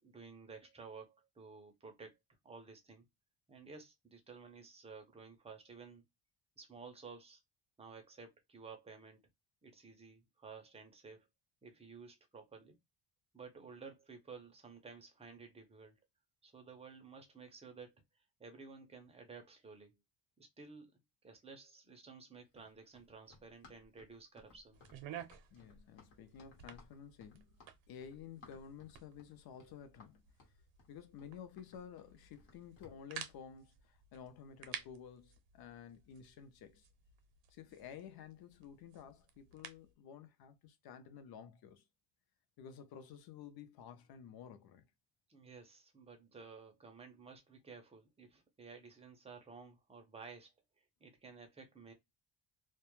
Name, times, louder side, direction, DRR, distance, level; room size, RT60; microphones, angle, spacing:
voice 1, 0.0-2.2 2.4-3.1 3.5-6.0 6.6-7.4 7.8-9.3 9.6-11.3 11.6-12.8 13.3-16.0 16.4-17.9 18.4-20.0 20.4-20.9 21.2-24.8 45.3-50.5 50.8-51.9, right 5 dB, 15° right, 0.4 m, -54 dB
Run, 22.5-33.0, left 3 dB, 85° left, 1.0 m, -63 dB
sound 1, 24.7-39.9, right 9 dB, 80° right, 0.6 m, -54 dB
voice 2, 25.5-27.6 27.9-30.3 30.9-36.9 37.5-41.8 42.6-44.9, left 8 dB, 55° left, 0.5 m, -52 dB
2.2 x 2.0 x 2.9 m
cardioid pair, 165°, 44 cm